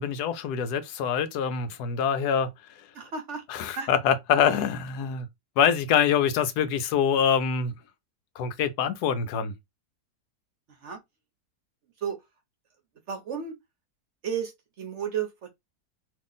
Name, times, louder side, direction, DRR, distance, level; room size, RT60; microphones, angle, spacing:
voice 1, 0.0-2.5 3.5-5.3 5.6-7.7 8.4-9.5, left 7 dB, 80° left, 1.1 m, -25 dB
voice 2, 2.9-3.4 3.8-3.9 10.8-11.0 12.0-12.2 13.1-13.5 14.2-15.5, right 7 dB, 55° right, 0.9 m, -33 dB
2.9 x 2.5 x 3.8 m
omnidirectional pair, 1.7 m